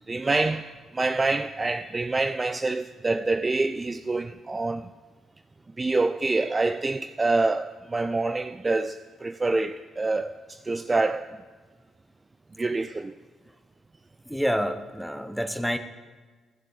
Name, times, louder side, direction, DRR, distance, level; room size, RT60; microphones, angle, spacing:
voice 1, 0.1-4.9 5.8-11.3 12.6-13.1, right 3 dB, 25° right, 0.3 m, -26 dB
voice 2, 14.3-15.8, equal, ahead, 0.7 m, -28 dB
14.5 x 7.6 x 3.9 m
cardioid pair, 90°, 0 cm